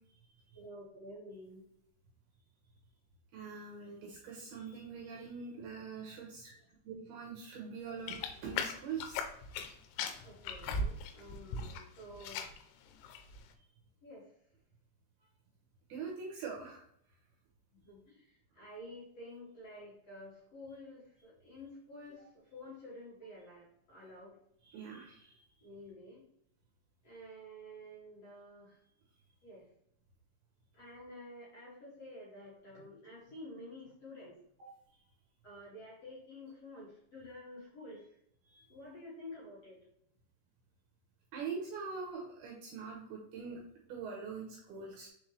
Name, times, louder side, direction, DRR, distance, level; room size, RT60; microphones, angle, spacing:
voice 1, 0.5-1.6 6.4-6.5 10.2-12.5 14.0-14.3 17.8-22.3 22.5-24.3 25.6-26.2 27.0-28.8 29.4-29.6 30.8-34.3 35.4-38.0 38.7-39.8, left 1 dB, 45° left, -8 dB, 2.3 m, -50 dB
voice 2, 3.3-6.5 6.9-9.2 9.5-9.7 15.9-16.8 24.6-25.3 34.6-34.7 38.4-38.7 41.3-43.6 43.9-45.1, right 5 dB, 75° right, -1 dB, 2.5 m, -43 dB
sound 1, 8.1-9.7 10.0-11.8 12.1-12.6 13.0-13.4, left 4 dB, 90° left, 3.2 m, -37 dB
6.5 x 4.5 x 3.2 m, 0.72 s
omnidirectional pair, 5.4 m